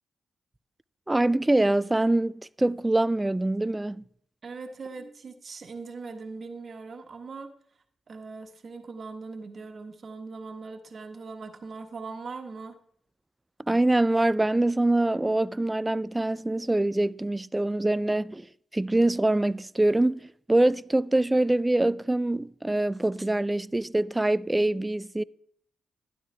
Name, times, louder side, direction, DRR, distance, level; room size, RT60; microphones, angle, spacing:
voice 1, 1.1-4.0 13.7-18.5 18.7-25.2, right 2 dB, 20° right, 0.4 m, -24 dB
voice 2, 4.4-7.5 8.1-12.8, right 4 dB, 55° right, 1.4 m, -40 dB
12.0 x 11.5 x 3.4 m
supercardioid pair, 45°, 0 cm